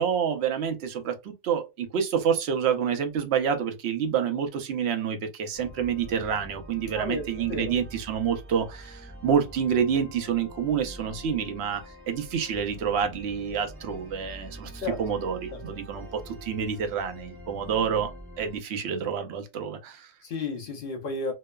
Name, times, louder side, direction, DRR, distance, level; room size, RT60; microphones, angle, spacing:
voice 1, 0.0-18.1 18.4-20.1, right 7 dB, 65° right, 0.7 m, -28 dB
sound 1, 5.5-18.6, equal, 15° right, 0.4 m, -45 dB
voice 2, 6.9-7.7 14.8-15.0 15.5-15.8 20.2-21.3, left 3 dB, 65° left, 0.5 m, -33 dB
2.9 x 2.0 x 2.2 m
omnidirectional pair, 1.4 m